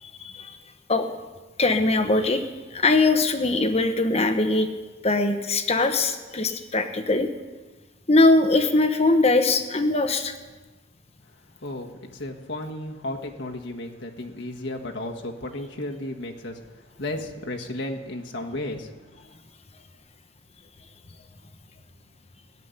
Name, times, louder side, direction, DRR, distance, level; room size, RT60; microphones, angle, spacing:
voice 1, 0.0-0.6 0.9-1.1 1.6-2.4 2.7-4.7 5.0-7.3 8.1-10.3, left 2 dB, 35° left, 7 dB, 1.1 m, -21 dB
voice 2, 11.6-16.6 17.0-18.9, left 1 dB, 70° left, 1 dB, 1.6 m, -33 dB
16.5 x 7.4 x 9.8 m, 1.3 s
head